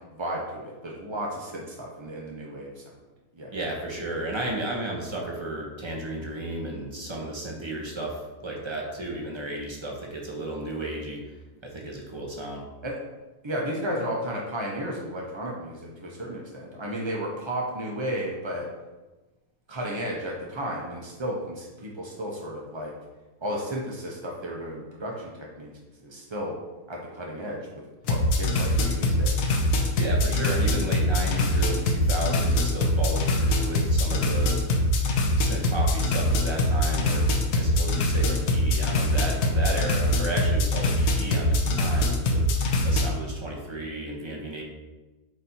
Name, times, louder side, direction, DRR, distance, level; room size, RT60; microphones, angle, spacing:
voice 1, 0.1-2.8 3.3-3.5 12.8-13.0 13.4-18.7 19.7-22.9 23.4-25.7 26.0-26.5 26.9-27.6 28.1-29.5, equal, 45° right, -2 dB, 0.3 m, -33 dB
voice 2, 3.5-11.2 11.6-12.6 30.0-34.6 35.4-37.3 37.6-42.4 42.8-44.6, right 1 dB, 20° right, -1 dB, 0.8 m, -33 dB
sound 1, 28.0-43.1, left 1 dB, 75° left, 1.3 m, -23 dB
8.2 x 2.7 x 4.3 m, 1.2 s
omnidirectional pair, 1.7 m